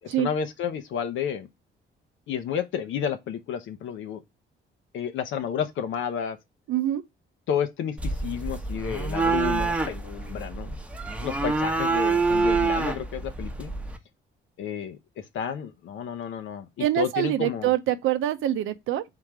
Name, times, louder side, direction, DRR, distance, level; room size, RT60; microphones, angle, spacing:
voice 1, 0.0-1.5 2.3-4.2 4.9-6.4 7.5-10.8 11.2-13.7 14.6-17.7, left 8 dB, 75° left, 0.7 m, -31 dB
voice 2, 6.7-7.0 16.8-19.0, right 13 dB, 85° right, 0.6 m, -25 dB
sound 1, 8.0-14.0, right 4 dB, 5° right, 0.8 m, -26 dB
3.8 x 3.0 x 4.5 m
cardioid pair, 90°, 20 cm